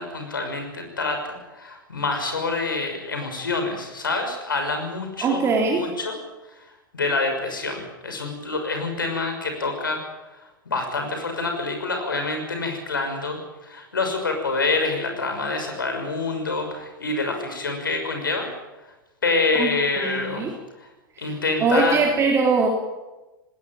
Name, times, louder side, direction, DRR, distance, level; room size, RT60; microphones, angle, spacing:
voice 1, 0.0-5.4 5.7-6.2 6.9-10.0 10.7-18.5 19.2-20.5 20.8-20.9 21.2-22.0, left 3 dB, 75° left, 5 dB, 6.2 m, -26 dB
voice 2, 5.2-5.9 19.6-20.5 21.2-21.3 21.6-22.7, right 4 dB, 25° right, 1 dB, 3.3 m, -22 dB
19.0 x 19.0 x 9.2 m, 1.1 s
figure-of-eight pair, 90°, 11 cm